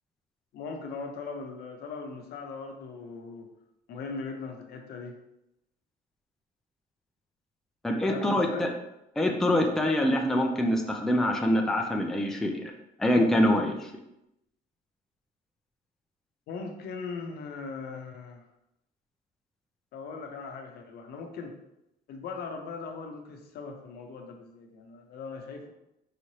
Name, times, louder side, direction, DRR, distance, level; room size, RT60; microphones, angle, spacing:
voice 1, 0.5-3.5 3.9-5.2 8.0-8.7 16.5-18.4 19.9-21.6 22.1-25.7, left 4 dB, 70° left, 3 dB, 0.7 m, -39 dB
voice 2, 7.8-8.7 9.2-12.6 13.0-13.9, left 1 dB, 5° left, 1 dB, 0.4 m, -25 dB
4.9 x 3.1 x 2.8 m, 0.87 s
cardioid pair, 110°, 17 cm